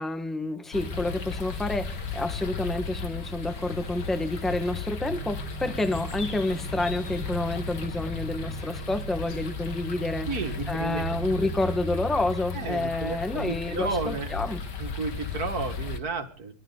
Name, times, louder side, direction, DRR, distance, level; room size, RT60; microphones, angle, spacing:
voice 1, 0.0-14.6, left 2 dB, ahead, 8 dB, 1.5 m, -29 dB
sound 1, 0.7-16.0, left 4 dB, 75° left, 2.7 m, -35 dB
sound 2, 1.1-2.4 3.5-4.9 5.9-7.3, left 1 dB, 45° left, 4.0 m, -53 dB
sound 3, 5.0-11.6, right 9 dB, 90° right, 1.9 m, -42 dB
voice 2, 10.3-11.0 12.5-14.3 14.8-16.5, right 4 dB, 55° right, 7 dB, 2.3 m, -32 dB
26.0 x 13.5 x 4.0 m, 0.43 s
omnidirectional pair, 1.9 m